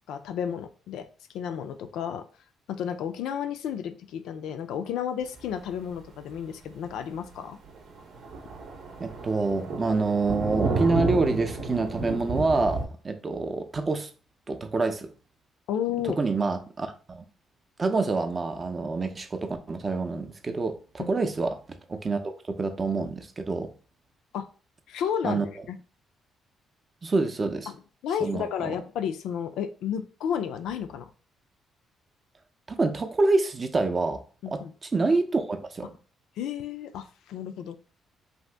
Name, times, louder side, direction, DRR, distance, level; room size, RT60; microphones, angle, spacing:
voice 1, 0.1-1.1 1.3-2.3 2.7-7.6 15.7-16.2 21.0-21.1 24.3-24.5 24.9-25.8 27.7-27.8 28.0-31.1 34.4-34.7 36.4-37.8, left 8 dB, 85° left, 0.3 m, -32 dB
Thunder, 5.9-6.1 6.4-6.5 6.9-7.0 7.3-7.4 7.6-12.9, right 3 dB, 70° right, 0.7 m, -31 dB
voice 2, 9.0-14.1 14.5-15.1 16.1-17.2 17.8-21.6 21.9-23.7 25.2-25.5 27.0-27.7 28.2-28.7 32.7-34.6 34.9-35.9, right 3 dB, 35° right, 0.5 m, -27 dB
2.7 x 2.5 x 3.3 m
cardioid pair, 90°, 0 cm